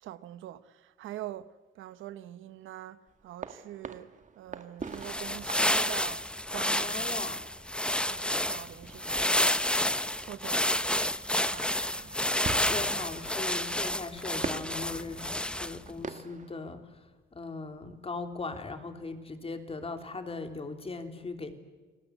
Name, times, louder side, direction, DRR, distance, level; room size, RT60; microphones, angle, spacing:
voice 1, 0.0-4.1 4.4-7.2 8.1-9.6 10.2-12.6, right 13 dB, 85° right, 1.1 m, -44 dB
sound 1, 3.1-6.7 7.2-10.3 10.8-10.9 11.2-16.7, right 5 dB, 40° right, 1.9 m, -43 dB
sound 2, 4.9-15.9, left 1 dB, 5° left, 1.0 m, -30 dB
voice 2, 6.8-7.4 12.6-16.9 17.3-21.5, left 3 dB, 30° left, 3.5 m, -39 dB
29.5 x 20.0 x 8.3 m
cardioid pair, 90°, 20 cm